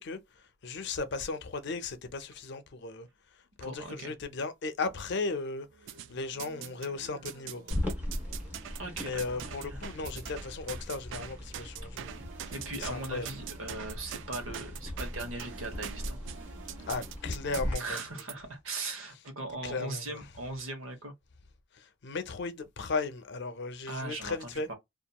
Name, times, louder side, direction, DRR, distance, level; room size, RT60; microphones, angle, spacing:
voice 1, 0.0-3.1 3.6-5.7 6.1-7.6 9.0-12.5 12.8-13.3 16.9-18.0 19.6-20.2 21.7-24.7, left 3 dB, 60° left, 0.5 m, -36 dB
voice 2, 3.6-4.1 8.8-9.8 12.5-16.2 17.8-21.1 23.9-24.7, right 2 dB, 85° right, 1.0 m, -39 dB
sound 1, 5.6-12.4, right 3 dB, 45° right, 0.9 m, -58 dB
sound 2, 5.9-6.9 7.3-18.3, right 10 dB, 65° right, 0.3 m, -44 dB
sound 3, 7.7-17.7, left 1 dB, 10° right, 1.1 m, -39 dB
2.9 x 2.4 x 2.2 m
head